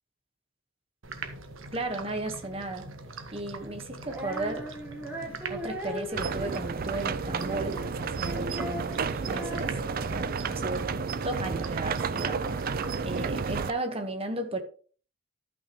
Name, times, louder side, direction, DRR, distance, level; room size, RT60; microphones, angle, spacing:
sound 1, 1.0-13.7, right 3 dB, 75° right, 1.3 m, -43 dB
voice 1, 1.7-2.9 3.3-4.7 5.2-9.8 10.1-12.7 13.0-14.6, right 2 dB, 30° right, 1.5 m, -35 dB
Female singing, 4.1-10.5, equal, 10° right, 2.0 m, -40 dB
sound 2, 6.1-13.7, right 5 dB, 45° right, 0.4 m, -31 dB
14.0 x 6.0 x 3.2 m
head